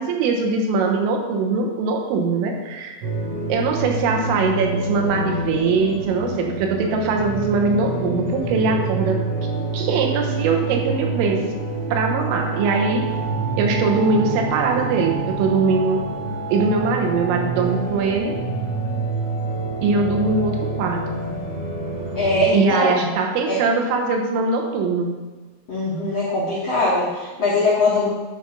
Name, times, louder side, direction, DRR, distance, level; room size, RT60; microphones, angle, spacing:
voice 1, 0.0-3.0 3.5-9.2 9.7-11.5 11.9-13.0 13.6-16.0 16.5-18.4 19.8-21.0 22.5-25.1, right 4 dB, 90° right, 2 dB, 3.7 m, -21 dB
sound 1, 3.0-22.5, right 3 dB, 70° right, 3.6 m, -27 dB
voice 2, 22.1-23.1 23.5-23.6 25.7-28.1, left 2 dB, 70° left, -8 dB, 1.5 m, -21 dB
11.0 x 5.3 x 5.3 m, 1.3 s
omnidirectional pair, 5.7 m